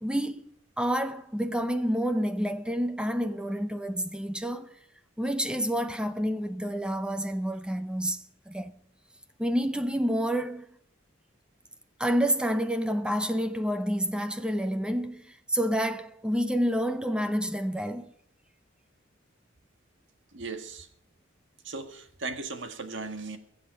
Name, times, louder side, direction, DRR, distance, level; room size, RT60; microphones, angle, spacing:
voice 1, 0.0-0.4 0.8-4.7 5.2-8.7 9.4-10.7 12.0-15.2 15.5-18.1, equal, 5° right, 0.7 m, -28 dB
voice 2, 20.3-20.9 21.6-23.4, right 3 dB, 65° right, 1.8 m, -37 dB
21.5 x 7.9 x 5.5 m
head